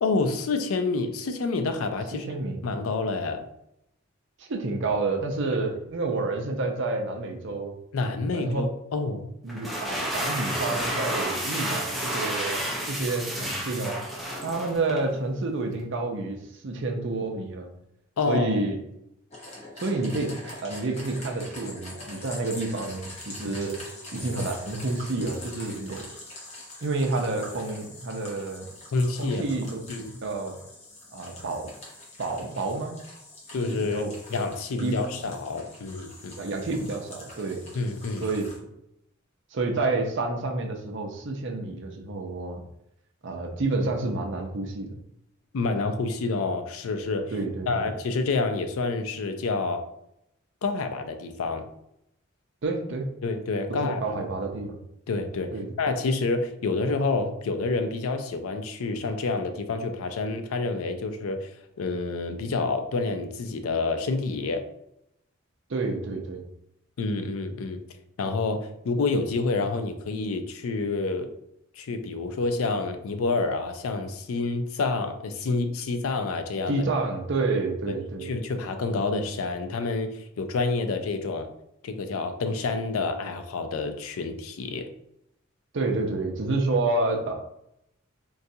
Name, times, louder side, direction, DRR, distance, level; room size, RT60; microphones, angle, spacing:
voice 1, 0.0-2.3 2.6-3.4 7.9-9.3 18.2-18.6 28.9-29.4 29.9-30.1 33.5-36.4 37.7-38.3 45.5-47.3 47.7-49.8 50.6-51.7 53.2-54.2 55.1-55.5 55.8-61.5 61.8-64.6 67.0-67.8 68.2-71.3 71.8-76.8 77.9-78.0 78.2-81.5 81.8-84.9, left 3 dB, 80° left, 7 dB, 0.4 m, -28 dB
voice 2, 2.1-2.6 4.4-7.8 8.3-8.6 9.4-14.0 14.4-17.7 18.3-18.8 19.8-23.8 24.1-26.1 26.8-28.7 29.2-29.8 30.2-30.6 31.1-31.7 32.2-33.0 33.6-34.1 34.8-35.2 36.4-37.6 38.2-38.4 39.5-42.6 43.2-45.0 47.3-47.9 52.6-53.1 53.8-54.8 55.5-55.7 65.7-66.4 76.7-78.3 85.7-87.3, right 3 dB, 60° right, 3 dB, 0.6 m, -29 dB
sound 1, 9.5-15.1, right 1 dB, ahead, 0.5 m, -31 dB
sound 2, 19.3-38.6, left 1 dB, 30° left, 0.8 m, -44 dB
3.9 x 2.3 x 2.7 m, 0.80 s
head